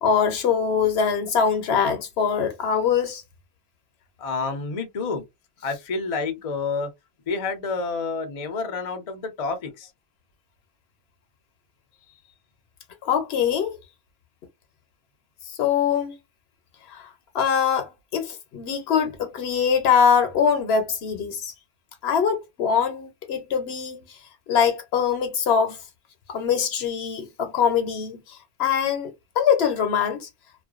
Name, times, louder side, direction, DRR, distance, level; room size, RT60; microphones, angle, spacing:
voice 1, 0.0-3.2 13.0-13.8 15.5-16.1 16.9-17.1 17.3-21.5 22.0-24.2 24.5-25.8 26.3-29.1 29.4-30.3, left 7 dB, 75° left, 0.9 m, -23 dB
voice 2, 4.2-5.2 5.6-6.9 7.3-9.9, left 4 dB, 45° left, 0.5 m, -29 dB
2.4 x 2.2 x 2.3 m
omnidirectional pair, 1.1 m